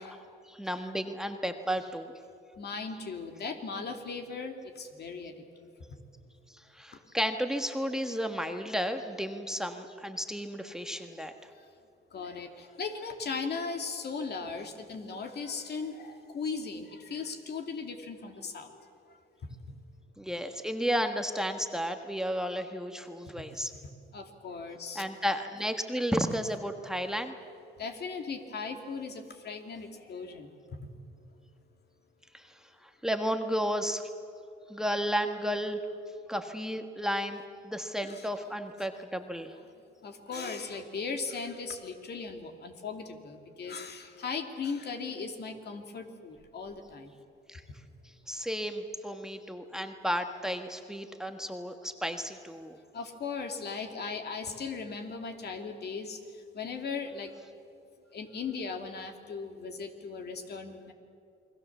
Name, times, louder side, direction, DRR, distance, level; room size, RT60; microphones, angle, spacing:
voice 1, 0.0-2.1 6.7-11.3 20.2-23.7 24.9-27.3 32.3-32.5 32.8-34.0 34.7-35.8 36.3-39.5 47.5-47.6 48.3-52.8, equal, 5° right, 6 dB, 1.5 m, -33 dB
voice 2, 2.6-5.7 12.1-18.8 23.4-23.5 24.1-25.0 27.8-30.8 38.0-38.3 40.0-47.1 52.9-56.2 56.5-57.3 58.1-60.9, left 5 dB, 55° left, 5 dB, 2.6 m, -38 dB
29.0 x 21.5 x 7.2 m, 2.4 s
cardioid pair, 90°, 20 cm